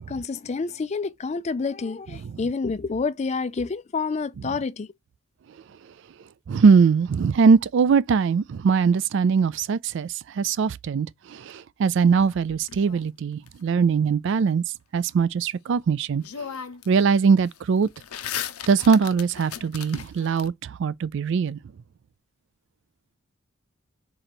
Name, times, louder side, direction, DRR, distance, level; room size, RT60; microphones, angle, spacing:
voice 1, 0.0-4.9, left 4 dB, 30° left, 0.3 m, -28 dB
voice 2, 6.5-10.1 10.4-14.6 14.9-16.2 16.9-17.9 18.7-21.6, right 5 dB, 55° right, 0.3 m, -21 dB
sound 1, 12.2-13.5 15.7-15.8 16.2-17.0 17.3-20.5, left 9 dB, 85° left, 0.6 m, -36 dB
3.8 x 3.0 x 4.3 m
head